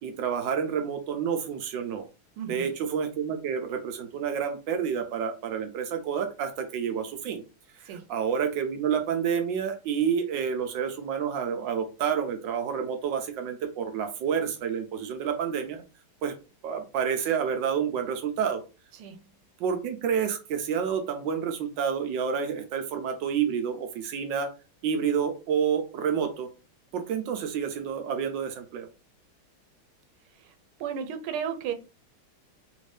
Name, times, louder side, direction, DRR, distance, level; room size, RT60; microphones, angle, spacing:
voice 1, 0.0-2.0 2.5-7.4 8.1-15.8 16.2-16.3 16.6-18.6 19.6-24.5 24.8-26.5 26.9-28.9, right 7 dB, 70° right, 1.2 m, -29 dB
voice 2, 2.4-2.7 7.8-8.1 18.9-19.2 30.3-30.5 30.8-31.7, right 8 dB, 90° right, 1.5 m, -34 dB
3.6 x 2.6 x 3.2 m
omnidirectional pair, 2.3 m